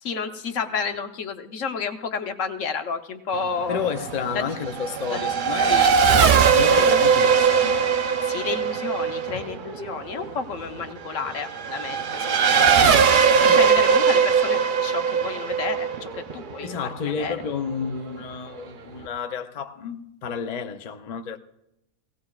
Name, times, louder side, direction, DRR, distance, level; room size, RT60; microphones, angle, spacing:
voice 1, 0.0-3.8 4.3-4.4 5.1-5.2 5.7-5.9 8.2-12.8 13.3-17.4, left 5 dB, 65° left, 1.2 m, -31 dB
Race car auto racing / Accelerating revving vroom, 3.3-17.4, right 6 dB, 50° right, 0.6 m, -20 dB
voice 2, 3.7-7.8 13.4-13.7 16.6-21.4, left 6 dB, 45° left, 0.5 m, -31 dB
19.5 x 17.0 x 2.4 m
omnidirectional pair, 1.5 m